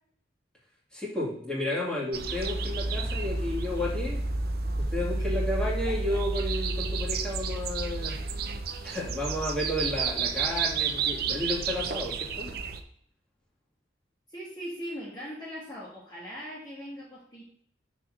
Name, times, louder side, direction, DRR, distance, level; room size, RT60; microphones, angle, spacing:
voice 1, 0.9-4.2 4.9-8.2 8.8-12.5, left 1 dB, 5° left, -6 dB, 2.4 m, -32 dB
sound 1, 2.1-12.8, right 4 dB, 55° right, 0.7 m, -31 dB
voice 2, 5.8-6.2 14.3-17.4, equal, 25° left, -7 dB, 1.6 m, -40 dB
6.6 x 4.2 x 6.5 m, 0.68 s
head